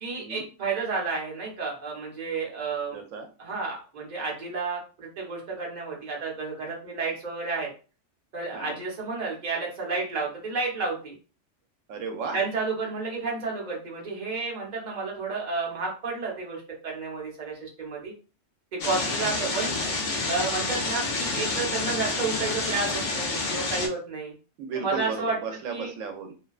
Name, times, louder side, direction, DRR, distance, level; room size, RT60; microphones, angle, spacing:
voice 1, 0.0-3.0 3.4-7.7 8.3-11.1 12.3-18.1 18.7-19.8 20.3-24.3 24.7-25.3 25.7-25.9, right 4 dB, 40° right, -2 dB, 0.9 m, -31 dB
voice 2, 2.9-3.3 8.5-8.8 11.9-12.4 18.9-19.1 24.6-26.3, right 5 dB, 85° right, 4 dB, 1.0 m, -35 dB
sound 1, 18.8-23.9, left 3 dB, 60° left, 0.5 m, -29 dB
2.5 x 2.2 x 2.3 m, 0.35 s
omnidirectional pair, 1.3 m